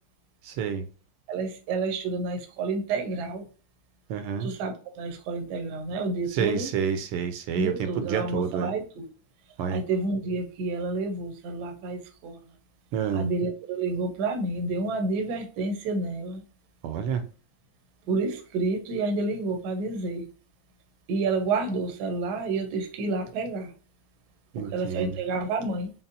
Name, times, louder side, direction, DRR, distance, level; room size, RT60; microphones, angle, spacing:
voice 1, 0.4-0.9 4.1-4.5 6.3-8.7 9.6-9.8 12.9-13.3 16.8-17.2 24.5-25.2, right 7 dB, 80° right, 1.5 m, -29 dB
voice 2, 1.3-3.5 4.4-6.7 7.5-9.1 9.7-12.4 13.1-16.4 18.1-20.3 21.1-23.7 24.5-25.9, right 3 dB, 65° right, 1.0 m, -29 dB
5.4 x 2.0 x 2.5 m
omnidirectional pair, 2.4 m